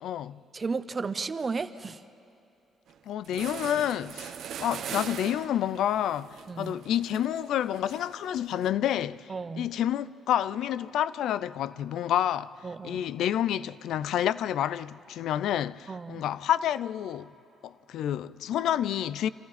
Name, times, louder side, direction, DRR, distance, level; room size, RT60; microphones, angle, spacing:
voice 1, 0.0-0.4 3.1-4.3 4.6-12.6 12.8-17.3 17.6-19.3, left 10 dB, 80° left, 0.4 m, -29 dB
voice 2, 0.5-2.0 6.5-6.8 9.3-9.7 12.6-13.0 15.9-16.2, right 4 dB, 35° right, 0.8 m, -33 dB
sound 1, 2.9-3.0 3.2-8.7, right 8 dB, 75° right, 0.9 m, -41 dB
29.5 x 26.0 x 4.2 m
cardioid pair, 90°, 0 cm